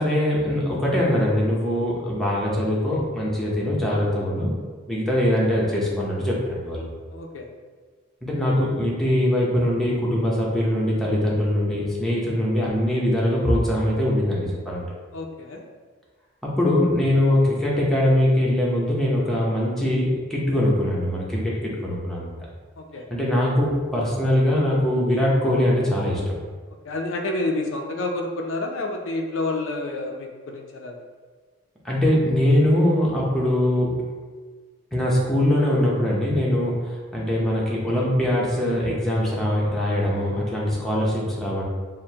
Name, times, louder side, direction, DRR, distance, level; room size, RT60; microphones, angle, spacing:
voice 1, 0.0-4.5 4.9-6.9 8.2-14.9 16.4-22.4 23.1-26.3 31.8-34.0 34.9-41.6, left 1 dB, ahead, -6 dB, 0.7 m, -22 dB
voice 2, 7.1-7.5 15.1-15.6 22.8-23.0 26.9-30.9, left 2 dB, 65° left, 2 dB, 0.4 m, -29 dB
6.3 x 2.1 x 2.8 m, 1.5 s
head